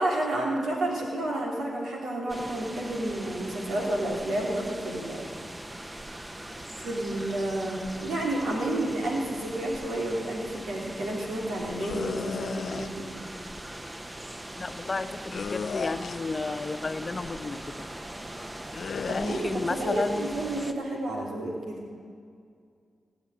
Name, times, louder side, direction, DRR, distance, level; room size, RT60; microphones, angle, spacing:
voice 1, 0.0-5.3 6.8-13.1 19.0-21.8, right 1 dB, 90° right, -2 dB, 3.1 m, -30 dB
sound 1, 2.3-20.7, right 1 dB, 20° right, 1.1 m, -41 dB
sound 2, 11.8-12.9 15.3-16.3 18.7-19.4, left 6 dB, 70° left, 0.4 m, -34 dB
voice 2, 14.6-17.9 19.1-20.3, left 3 dB, 45° left, 9 dB, 0.9 m, -32 dB
17.5 x 7.3 x 9.0 m, 2.2 s
cardioid pair, 50°, 0 cm